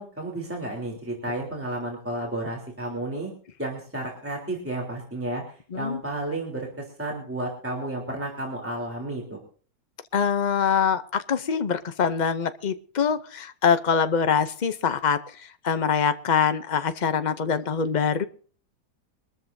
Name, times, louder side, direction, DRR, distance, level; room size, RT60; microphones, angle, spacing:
voice 1, 0.0-3.3 3.6-9.4, right 1 dB, 5° right, -1 dB, 3.4 m, -32 dB
voice 2, 10.1-15.2 15.6-18.2, left 6 dB, 80° left, 10 dB, 0.4 m, -24 dB
23.0 x 13.5 x 2.7 m, 0.41 s
omnidirectional pair, 1.9 m